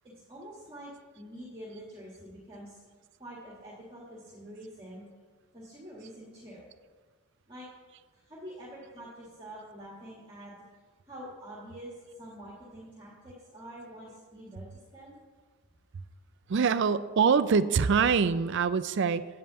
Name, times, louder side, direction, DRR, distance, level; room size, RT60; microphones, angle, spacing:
voice 1, 0.0-2.8 3.2-5.0 5.5-6.7 7.5-7.7 8.1-10.5 11.0-15.2, equal, 20° right, -5 dB, 1.6 m, -46 dB
voice 2, 16.5-19.3, right 5 dB, 55° right, 13 dB, 0.4 m, -24 dB
8.7 x 5.4 x 7.8 m, 1.4 s
head